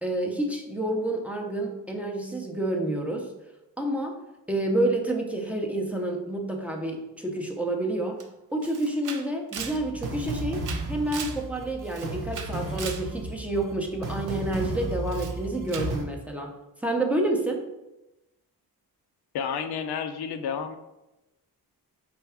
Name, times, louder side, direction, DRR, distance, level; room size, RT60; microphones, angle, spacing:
voice 1, 0.0-3.3 3.8-4.2 4.5-8.2 8.5-16.5 16.8-17.6, right 1 dB, 5° right, 1 dB, 0.5 m, -29 dB
Camera, 8.2-8.3 8.6-11.4 11.8-13.1 15.1-15.4 15.7-16.0, right 6 dB, 55° right, 0.5 m, -39 dB
sound 1, 9.6-16.0, right 2 dB, 80° right, 0.9 m, -34 dB
voice 2, 19.3-20.8, left 7 dB, 90° left, 9 dB, 0.5 m, -30 dB
4.5 x 3.4 x 3.4 m, 0.98 s
wide cardioid pair, 135°, 37 cm